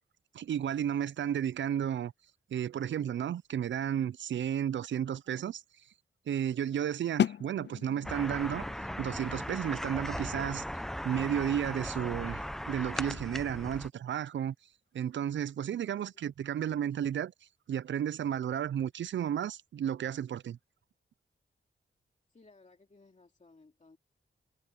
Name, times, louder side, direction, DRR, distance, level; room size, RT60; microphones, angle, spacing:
voice 1, 0.3-2.1 2.5-5.6 6.3-8.6 9.0-10.6 11.0-14.5 14.9-17.3 17.7-20.6, right 9 dB, 75° right, 0.4 m, -33 dB
sound 1, 7.2-12.9, left 9 dB, 65° left, 0.5 m, -38 dB
sound 2, 8.0-13.9, equal, ahead, 0.9 m, -38 dB
voice 2, 22.3-24.0, left 3 dB, 40° left, 2.7 m, -60 dB
cardioid pair, 60°, 20 cm